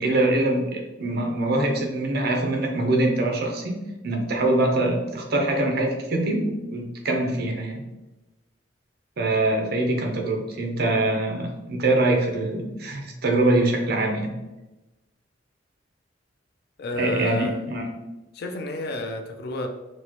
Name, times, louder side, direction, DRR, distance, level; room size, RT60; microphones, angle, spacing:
voice 1, 0.0-7.8 9.2-14.3 17.0-17.9, right 2 dB, 55° right, 2 dB, 0.6 m, -24 dB
voice 2, 16.8-17.6 18.3-19.7, left 1 dB, 60° left, 5 dB, 0.4 m, -30 dB
4.2 x 2.2 x 2.9 m, 1.0 s
head